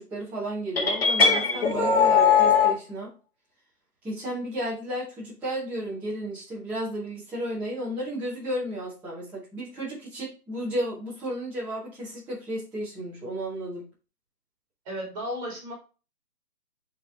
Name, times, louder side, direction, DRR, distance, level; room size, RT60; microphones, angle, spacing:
voice 1, 0.0-3.1 4.0-13.8, right 1 dB, 5° right, -9 dB, 1.2 m, -33 dB
sound 1, 0.8-2.7, left 6 dB, 40° left, 1.8 m, -20 dB
voice 2, 14.8-15.7, equal, 20° right, 0 dB, 2.9 m, -34 dB
9.1 x 4.0 x 3.5 m, 0.34 s
figure-of-eight pair, 155°, 46 cm